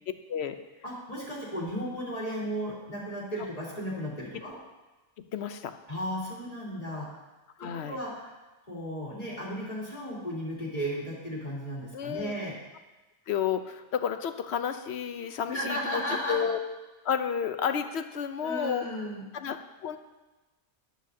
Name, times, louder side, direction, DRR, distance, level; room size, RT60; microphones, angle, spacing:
voice 1, 0.8-4.6 5.9-7.1 7.6-8.3 8.7-12.6 15.5-16.4 18.4-19.3, equal, 30° left, -6 dB, 3.3 m, -35 dB
voice 2, 5.3-5.7 7.6-8.0 11.9-12.3 13.3-16.6 17.0-18.9 19.3-19.6 19.8-20.0, left 8 dB, 70° left, 9 dB, 0.9 m, -31 dB
12.5 x 11.5 x 2.8 m, 1.1 s
omnidirectional pair, 1.2 m